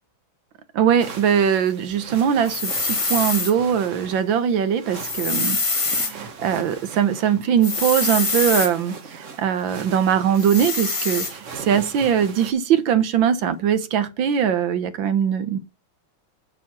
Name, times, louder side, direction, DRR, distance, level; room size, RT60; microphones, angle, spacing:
voice 1, 0.8-2.7 3.1-5.6 6.1-8.9 9.4-11.2 11.7-15.6, right 8 dB, 75° right, 1.7 m, -21 dB
sound 1, 1.0-12.5, right 5 dB, 45° right, 1.2 m, -40 dB
sound 2, 2.5-3.5 4.9-6.1 7.6-8.7 10.4-11.3, left 3 dB, 35° left, 0.5 m, -24 dB
8.8 x 4.5 x 6.1 m
omnidirectional pair, 2.2 m